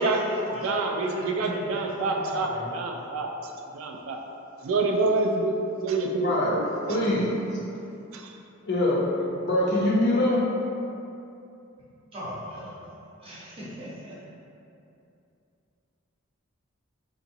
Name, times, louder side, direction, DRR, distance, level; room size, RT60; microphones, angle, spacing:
voice 1, 0.0-0.7 1.0-2.7 12.1-14.1, equal, 25° right, -8 dB, 0.8 m, -38 dB
voice 2, 0.6-3.3 3.7-4.2 4.6-7.1 8.1-8.3, right 3 dB, 75° right, 2 dB, 0.3 m, -27 dB
voice 3, 6.2-6.6 6.9-7.4 8.6-10.5, left 1 dB, 50° left, -5 dB, 0.6 m, -24 dB
3.8 x 2.9 x 2.7 m, 2.7 s
head